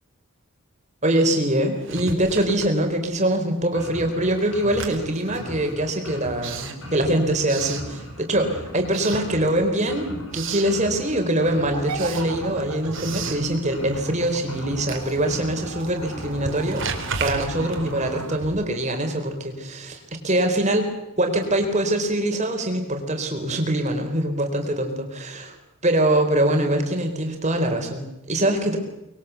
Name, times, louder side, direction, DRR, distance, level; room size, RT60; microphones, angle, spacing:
voice 1, 1.0-16.9 17.2-20.9 21.2-25.5 25.8-28.8, right 1 dB, 30° right, 4 dB, 4.2 m, -23 dB
Writing, 1.8-3.3 3.6-8.4 8.8-9.8 10.1-10.8 11.2-18.9, right 5 dB, 55° right, 3.3 m, -36 dB
sound 1, 3.7-18.2, left 1 dB, 70° left, 6.4 m, -39 dB
sound 2, 11.7-18.4, right 3 dB, 85° right, 2.4 m, -36 dB
24.5 x 22.0 x 8.3 m, 0.94 s
head